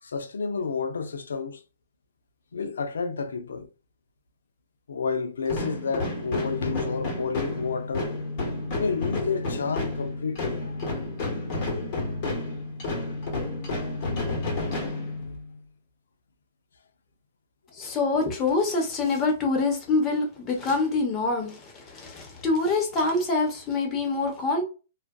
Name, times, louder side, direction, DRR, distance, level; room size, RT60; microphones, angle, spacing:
voice 1, 0.0-1.6 2.5-3.7 4.9-8.2 8.7-10.8 15.2-15.4, left 5 dB, 85° left, 0.4 m, -30 dB
sound 1, 5.4-15.6, left 2 dB, 45° left, 1.2 m, -31 dB
voice 2, 17.7-24.6, left 3 dB, 25° left, 0.9 m, -25 dB
2.4 x 2.4 x 2.2 m
hypercardioid pair, 135°, 0 cm